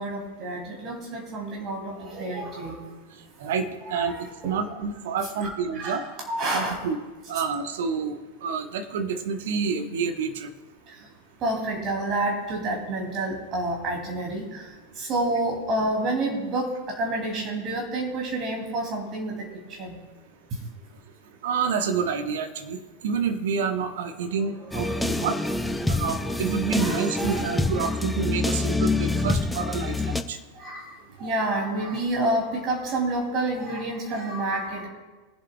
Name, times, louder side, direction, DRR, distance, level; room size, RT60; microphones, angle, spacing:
voice 1, 0.0-2.8 3.8-4.6 5.7-6.8 11.4-14.6 15.0-16.7 17.0-19.3 19.8-20.0 24.7-25.2 26.8-28.0 30.6-30.9 31.2-34.9, right 2 dB, 35° right, -1 dB, 2.6 m, -29 dB
voice 2, 3.4-6.0 6.5-7.0 7.3-10.5 21.4-22.8 23.0-25.3 25.9-30.4, right 5 dB, 55° right, 7 dB, 1.0 m, -28 dB
sound 1, 24.7-30.2, left 2 dB, 5° left, 0.5 m, -26 dB
21.5 x 7.7 x 2.3 m, 1.3 s
figure-of-eight pair, 90°, 0 cm